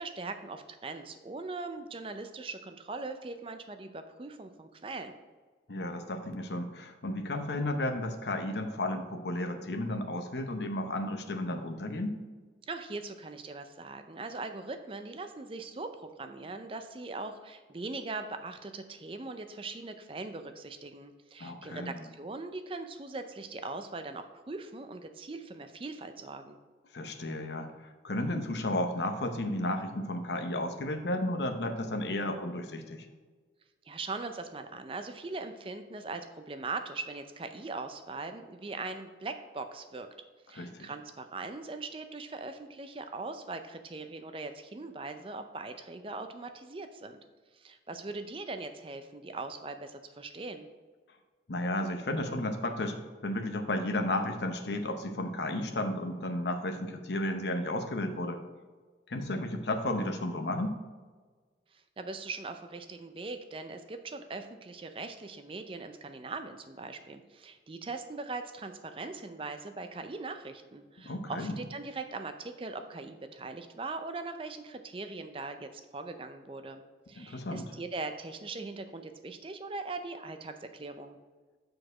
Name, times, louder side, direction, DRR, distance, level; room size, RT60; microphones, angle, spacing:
voice 1, 0.0-5.1 12.7-26.6 33.9-40.1 40.5-47.2 47.5-50.7 61.7-76.8 77.1-81.2, right 3 dB, 30° right, 8 dB, 0.5 m, -40 dB
voice 2, 5.7-12.2 21.4-22.0 26.9-27.7 28.0-33.1 40.5-40.9 51.5-58.4 59.1-60.8 71.0-71.6 77.2-77.7, left 1 dB, 75° left, 6 dB, 0.8 m, -33 dB
6.4 x 4.8 x 5.0 m, 1.4 s
head